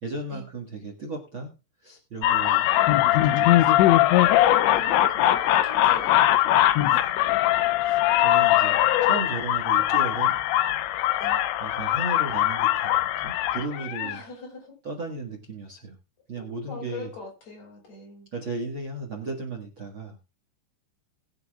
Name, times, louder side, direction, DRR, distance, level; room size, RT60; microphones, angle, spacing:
voice 1, 0.0-1.5 1.8-2.7 3.1-3.9 7.8-10.4 11.6-14.2 14.8-15.9 16.3-17.1 18.3-20.2, right 3 dB, 70° right, 0 dB, 1.1 m, -35 dB
sound 1, 2.2-14.2, left 13 dB, 85° left, 3.1 m, -21 dB
voice 2, 2.4-2.7 4.7-7.3 11.2-11.4 13.6-14.7 16.4-18.3, left 3 dB, 40° left, 0 dB, 6.0 m, -42 dB
21.0 x 8.3 x 2.4 m, 0.28 s
omnidirectional pair, 5.3 m